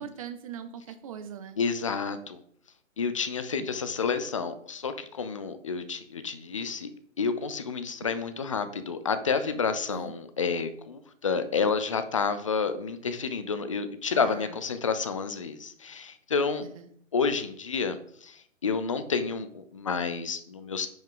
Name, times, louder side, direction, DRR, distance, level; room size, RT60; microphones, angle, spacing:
voice 1, 0.0-1.6 9.9-10.1 14.1-14.6 16.7-16.9, right 8 dB, 25° right, 10 dB, 0.7 m, -41 dB
voice 2, 1.6-2.4 3.0-6.9 7.2-16.6 17.1-20.9, left 5 dB, 25° left, 11 dB, 0.4 m, -30 dB
10.0 x 5.5 x 3.8 m, 0.65 s
hypercardioid pair, 150°, 39 cm